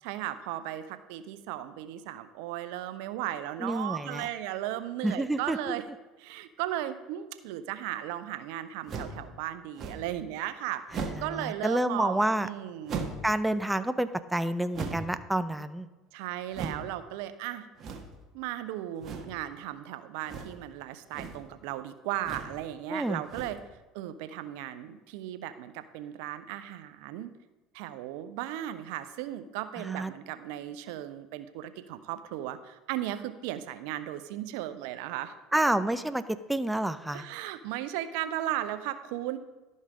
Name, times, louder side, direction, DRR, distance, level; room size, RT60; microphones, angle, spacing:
voice 1, 0.0-5.9 6.2-13.0 16.1-17.7 18.3-23.6 23.9-27.3 27.7-35.4 37.1-39.4, right 13 dB, 75° right, 11 dB, 0.6 m, -36 dB
voice 2, 3.6-4.3 5.0-5.8 10.9-12.5 13.2-15.9 22.9-23.2 29.8-30.1 35.5-36.2 36.5-37.3, right 1 dB, 5° right, 11 dB, 0.5 m, -29 dB
sound 1, 8.9-9.2 9.8-10.2 10.9-11.3 12.9-13.3 14.7-15.2 16.5-16.9 17.8-18.2 19.0-19.4 20.2-20.7 21.0-21.5 22.2-22.6 23.2-23.7, right 4 dB, 45° right, 1.4 m, -38 dB
12.0 x 5.5 x 4.9 m, 1.1 s
hypercardioid pair, 80°, 0 cm